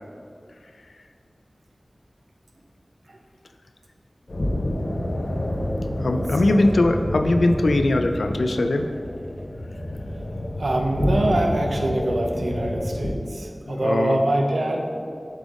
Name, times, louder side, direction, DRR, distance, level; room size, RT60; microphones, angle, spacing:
sound 1, 4.3-13.1, left 1 dB, 65° left, 0.8 m, -28 dB
voice 1, 6.0-8.9 13.7-14.2, left 2 dB, 90° left, 6 dB, 0.3 m, -21 dB
voice 2, 10.6-14.9, right 1 dB, 80° right, 2 dB, 0.6 m, -24 dB
7.3 x 3.5 x 3.6 m, 2.4 s
wide cardioid pair, 45°, 0 cm